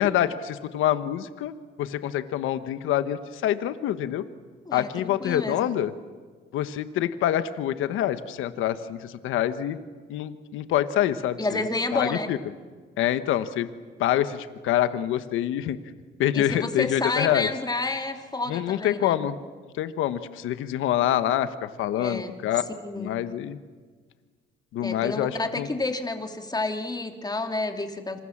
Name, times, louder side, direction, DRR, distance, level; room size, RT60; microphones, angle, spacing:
voice 1, 0.0-1.5 1.8-4.2 4.7-5.9 6.5-9.8 10.1-11.6 11.9-12.4 13.0-13.7 14.0-15.8 16.2-17.5 18.5-19.4 19.8-22.6 23.0-23.6 24.7-25.7, left 11 dB, 90° left, 11 dB, 1.3 m, -26 dB
voice 2, 4.6-5.7 11.4-12.3 16.3-19.2 22.0-22.3 22.8-23.1 24.8-28.2, left 2 dB, 20° left, 5 dB, 2.8 m, -30 dB
27.5 x 26.5 x 7.4 m, 1.5 s
cardioid pair, 90°, 20 cm